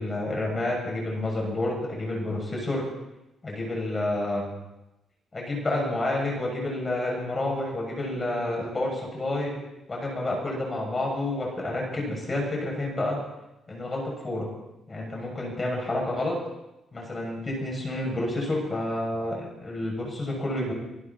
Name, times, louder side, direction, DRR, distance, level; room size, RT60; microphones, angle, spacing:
voice 1, 0.0-2.8 3.4-4.5 5.3-9.5 9.9-13.2 13.7-14.5 14.9-16.4 16.9-20.7, left 1 dB, 30° left, -1 dB, 6.8 m, -29 dB
25.0 x 12.0 x 4.2 m, 0.93 s
cardioid pair, 90°, 0 cm